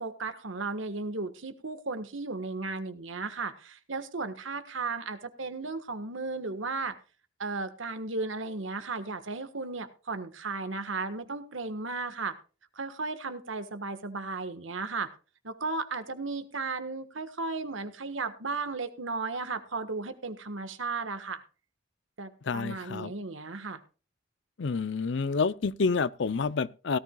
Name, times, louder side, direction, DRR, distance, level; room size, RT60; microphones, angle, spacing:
voice 1, 0.0-7.0 7.4-12.4 12.7-15.1 15.4-21.4 22.2-23.8, right 3 dB, 75° right, 1.4 m, -35 dB
voice 2, 22.4-23.1 24.6-27.0, left 4 dB, 60° left, 0.5 m, -28 dB
17.5 x 13.0 x 2.3 m
head